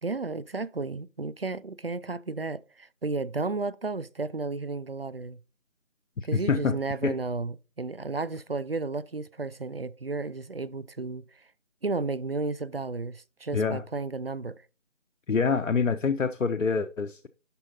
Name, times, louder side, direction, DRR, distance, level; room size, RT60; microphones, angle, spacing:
voice 1, 0.0-5.4 6.2-11.4 11.8-14.6, right 3 dB, 50° right, 0.5 m, -33 dB
voice 2, 6.2-6.8 7.0-7.1 13.5-13.8 15.3-17.3, left 5 dB, 90° left, 0.8 m, -26 dB
11.5 x 4.0 x 4.1 m
figure-of-eight pair, 175°, 37 cm